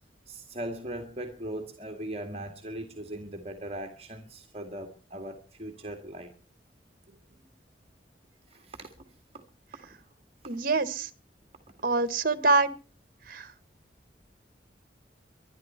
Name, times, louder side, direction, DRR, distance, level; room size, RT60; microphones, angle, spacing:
voice 1, 0.3-6.3 8.5-8.9, right 1 dB, 35° right, 2.1 m, -39 dB
voice 2, 10.5-11.1 11.8-12.7 13.3-13.5, right 3 dB, 55° right, 1.5 m, -25 dB
24.0 x 10.5 x 4.5 m
head